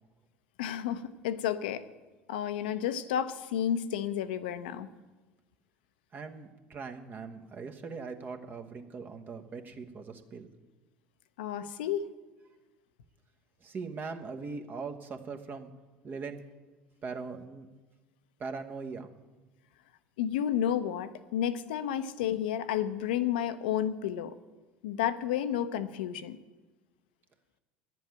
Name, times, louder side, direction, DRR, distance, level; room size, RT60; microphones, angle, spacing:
voice 1, 0.6-1.8 2.3-4.9 11.4-12.1 20.2-24.3 24.8-26.4, left 10 dB, 75° left, 10 dB, 0.7 m, -31 dB
voice 2, 6.1-10.5 13.6-15.7 16.0-16.4 17.0-17.7 18.4-19.1, right 4 dB, 40° right, 5 dB, 1.3 m, -40 dB
10.5 x 7.6 x 9.1 m, 1.2 s
hypercardioid pair, 70°, 5 cm